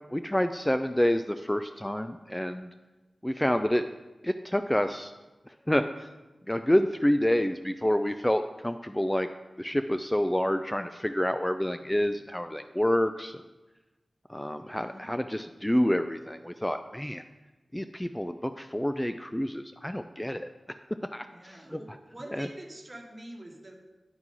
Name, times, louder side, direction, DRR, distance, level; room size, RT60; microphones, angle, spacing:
voice 1, 0.1-2.7 3.2-3.9 4.2-5.1 5.5-6.1 6.5-9.3 9.6-13.4 14.3-17.2 17.7-20.5 21.1-22.0 22.3-22.5, equal, 10° left, 9 dB, 0.3 m, -28 dB
voice 2, 14.6-15.1 21.3-23.7, right 1 dB, 30° right, 2 dB, 1.5 m, -45 dB
9.6 x 6.0 x 3.8 m, 1.1 s
cardioid pair, 50°, 0 cm